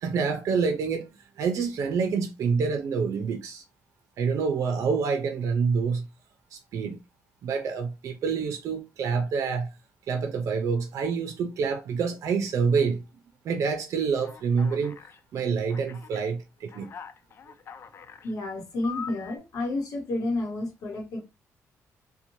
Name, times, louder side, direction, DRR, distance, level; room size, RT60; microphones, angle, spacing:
voice 1, 0.0-1.1 1.4-3.6 4.2-6.1 6.5-7.0 7.4-9.7 10.1-13.0 13.4-15.0 15.3-16.9, right 5 dB, 65° right, 0.5 m, -27 dB
Alarm, 14.2-15.2 15.7-16.2 16.7-18.3 18.8-19.4, left 7 dB, 45° left, 0.3 m, -42 dB
voice 2, 18.2-21.2, left 2 dB, 80° left, 0.9 m, -30 dB
2.9 x 2.2 x 2.7 m
cardioid pair, 105°, 6 cm